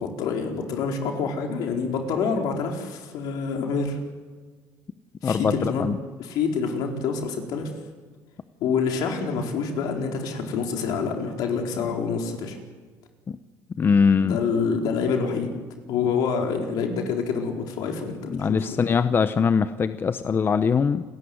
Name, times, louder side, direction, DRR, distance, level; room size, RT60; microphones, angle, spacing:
voice 1, 0.0-4.0 5.2-5.8 6.2-7.7 8.6-12.6 14.2-15.5 15.9-18.9, left 5 dB, 75° left, 2 dB, 4.7 m, -27 dB
voice 2, 5.2-6.0 13.3-13.4 13.8-14.4 18.3-21.0, left 6 dB, 35° left, 11 dB, 0.9 m, -22 dB
29.0 x 15.0 x 9.7 m, 1.5 s
cardioid pair, 110°, 7 cm